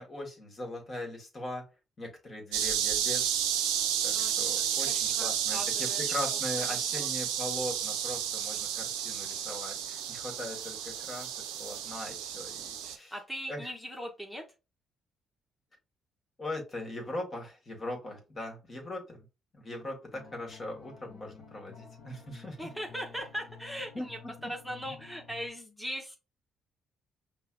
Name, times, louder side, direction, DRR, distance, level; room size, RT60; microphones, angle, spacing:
voice 1, 0.0-1.7 2.0-3.4 4.0-13.2 13.5-13.7 16.4-19.2 19.5-22.6 23.9-24.3 24.8-24.9, left 1 dB, 40° left, 1 dB, 1.4 m, -40 dB
sound 1, 2.5-13.0, right 9 dB, 85° right, 0.4 m, -32 dB
voice 2, 4.9-7.1 13.1-14.4 22.6-24.2 24.5-26.2, equal, ahead, 1 dB, 1.0 m, -40 dB
sound 2, 20.1-25.5, left 5 dB, 65° left, 0.8 m, -52 dB
5.4 x 2.1 x 2.3 m, 0.29 s
hypercardioid pair, 50°, 0 cm